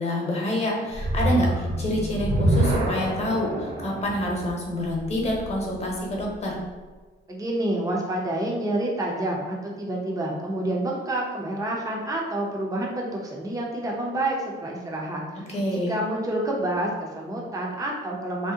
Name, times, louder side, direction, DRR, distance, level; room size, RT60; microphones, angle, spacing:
voice 1, 0.0-6.6 15.5-15.9, left 1 dB, 35° left, -2 dB, 1.0 m, -27 dB
sound 1, 0.9-6.2, right 1 dB, 75° right, 0.8 m, -27 dB
voice 2, 7.3-18.5, right 1 dB, 15° right, -2 dB, 0.6 m, -28 dB
2.7 x 2.1 x 3.6 m, 1.3 s
cardioid pair, 90°, 20 cm